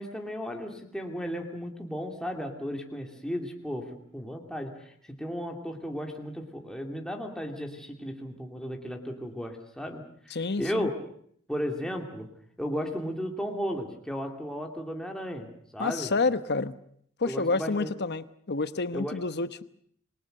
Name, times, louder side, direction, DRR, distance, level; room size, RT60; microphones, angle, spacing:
voice 1, 0.0-10.9 11.5-12.3 12.6-16.1 17.2-17.9 18.9-19.2, equal, 5° left, 1 dB, 2.7 m, -35 dB
voice 2, 10.3-10.9 15.8-16.8 17.2-19.6, left 3 dB, 50° left, 13 dB, 1.0 m, -29 dB
28.0 x 22.5 x 6.7 m, 0.64 s
head